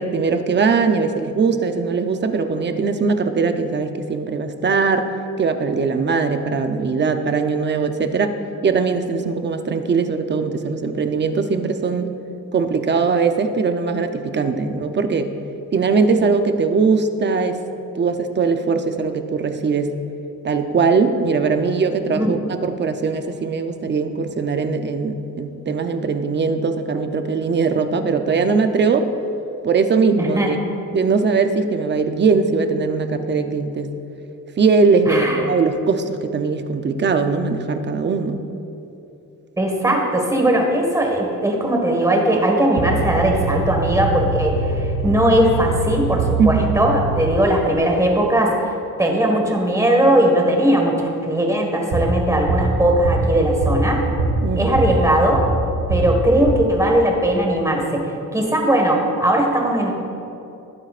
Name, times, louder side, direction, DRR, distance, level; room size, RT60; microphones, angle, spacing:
voice 1, 0.0-5.1 5.4-8.3 8.6-12.1 12.5-15.3 15.7-17.6 17.9-19.9 20.4-29.1 29.6-30.6 30.9-33.9 34.6-38.4 46.4-46.8 54.4-54.8, right 4 dB, 35° right, 7 dB, 0.7 m, -20 dB
voice 2, 30.2-30.5 35.1-35.4 39.6-48.5 49.0-54.0 54.5-55.4 55.9-58.1 58.3-59.9, right 1 dB, 10° right, 1 dB, 1.6 m, -19 dB
sound 1, 42.8-47.9 51.9-57.1, right 2 dB, 80° right, 1.8 m, -23 dB
18.5 x 9.3 x 2.5 m, 2.9 s
cardioid pair, 135°, 31 cm